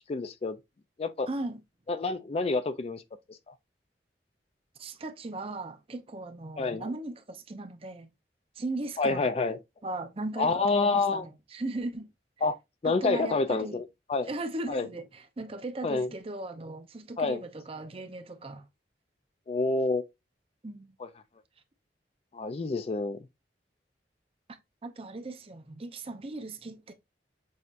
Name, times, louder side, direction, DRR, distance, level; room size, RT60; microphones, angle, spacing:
voice 1, 0.1-0.6 1.0-1.3 1.9-3.0 3.5-3.6 6.6-6.8 9.0-9.6 10.4-11.3 12.4-12.5 12.8-13.8 14.1-14.3 14.7-14.9 15.8-16.1 17.2-17.4 19.5-20.0 21.0-21.1 22.3-23.2, left 3 dB, 35° left, 0.3 m, -28 dB
voice 2, 1.3-1.6 4.8-8.1 8.6-9.3 9.8-12.1 12.8-13.8 14.2-18.6 20.6-20.9 24.8-26.9, right 2 dB, 35° right, 0.6 m, -37 dB
6.3 x 2.7 x 2.4 m
head